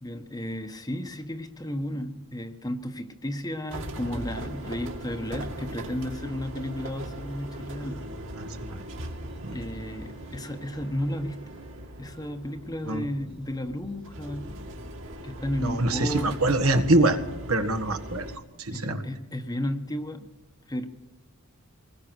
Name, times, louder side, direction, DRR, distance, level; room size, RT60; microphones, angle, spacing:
voice 1, 0.0-8.0 9.5-11.4 12.0-14.6 15.2-16.4 18.7-20.3 20.7-20.9, left 1 dB, 15° left, 7 dB, 1.2 m, -33 dB
sound 1, 3.7-18.4, right 1 dB, 60° right, 2.6 m, -39 dB
voice 2, 8.4-8.8 9.4-9.6 12.8-13.1 15.6-17.2 17.5-18.3 18.6-19.0, right 2 dB, 75° right, 7 dB, 1.7 m, -25 dB
24.0 x 20.0 x 6.3 m, 0.96 s
head